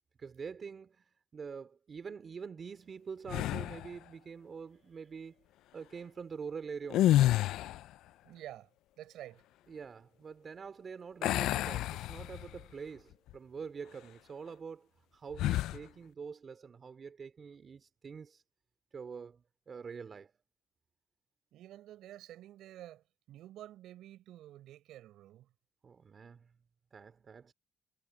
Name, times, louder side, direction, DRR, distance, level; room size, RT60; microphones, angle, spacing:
voice 1, 0.2-1.0 1.3-5.4 5.7-7.2 9.7-18.4 18.9-20.3 25.8-26.5 26.9-27.5, right 6 dB, 45° right, 2.6 m, -45 dB
sound 1, 3.3-3.9 6.8-7.9 11.2-12.6 13.1-13.3 15.3-15.8, left 14 dB, 90° left, 0.3 m, -29 dB
voice 2, 8.2-8.7 9.0-9.4 21.5-25.5, right 13 dB, 85° right, 6.9 m, -50 dB
cardioid pair, 90°, 0 cm